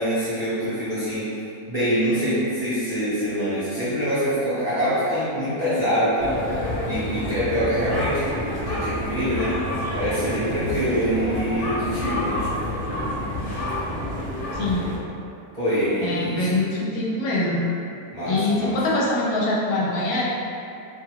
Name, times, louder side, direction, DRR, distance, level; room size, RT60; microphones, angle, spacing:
voice 1, 0.0-1.3 1.7-6.4 6.8-8.3 8.7-9.6 9.9-12.4 15.5-16.5 18.1-18.8, equal, 35° right, -15 dB, 0.7 m, -24 dB
sound 1, 6.2-15.0, left 1 dB, 50° left, 0.6 m, -28 dB
voice 2, 14.5-14.8 16.0-17.7 18.2-20.2, left 2 dB, 75° left, -5 dB, 1.0 m, -23 dB
2.7 x 2.4 x 2.9 m, 2.6 s
omnidirectional pair, 1.7 m